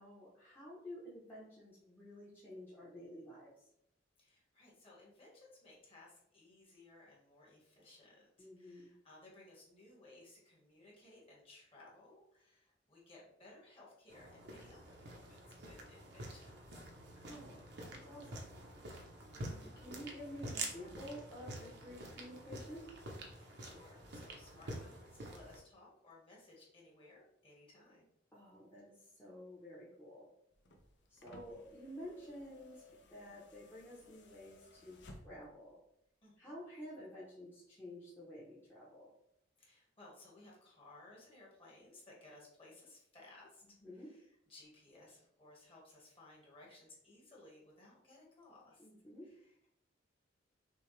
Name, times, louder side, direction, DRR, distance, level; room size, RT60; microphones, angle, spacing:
voice 1, 0.0-3.5 8.4-8.9 17.1-18.5 19.3-22.9 28.3-30.3 31.1-35.8 36.4-39.1 43.8-44.1 48.8-49.3, equal, 10° left, -9 dB, 1.0 m, -51 dB
voice 2, 4.2-16.9 23.3-28.1 31.5-31.6 36.2-36.6 39.6-48.9 49.2-49.7, left 2 dB, 30° left, -4 dB, 1.6 m, -60 dB
sound 1, 14.1-25.6, right 2 dB, 60° right, 0.9 m, -48 dB
sound 2, 30.5-35.6 36.8-36.9, equal, 65° left, 0.7 m, -59 dB
6.2 x 2.4 x 3.2 m, 0.73 s
head